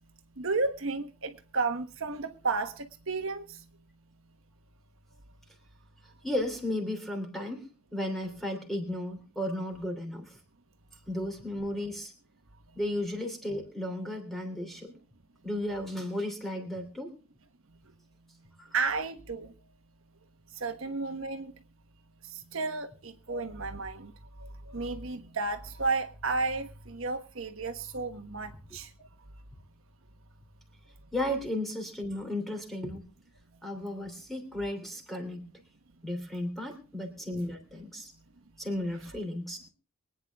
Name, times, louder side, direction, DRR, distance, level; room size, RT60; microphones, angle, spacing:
voice 1, 0.4-3.6 18.7-19.5 20.6-21.5 22.3-24.1 24.4-28.9, right 3 dB, 60° right, 1.3 m, -33 dB
voice 2, 6.2-7.7 7.9-10.4 11.1-12.1 12.7-14.9 15.4-17.1 18.6-18.7 23.3-23.4 31.1-33.0 33.6-35.5 36.0-38.1 38.6-39.6, left 1 dB, ahead, 3.1 m, -34 dB
24.0 x 9.4 x 3.5 m
head